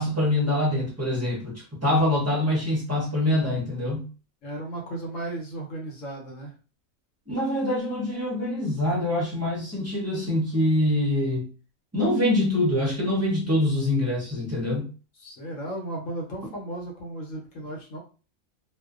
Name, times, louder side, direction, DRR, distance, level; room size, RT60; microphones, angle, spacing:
voice 1, 0.0-4.1 7.3-11.5 11.9-14.9, left 1 dB, 20° right, 0.4 m, -24 dB
voice 2, 4.4-6.5 15.2-18.0, right 1 dB, 70° left, 1.1 m, -35 dB
2.5 x 2.1 x 2.3 m
omnidirectional pair, 1.4 m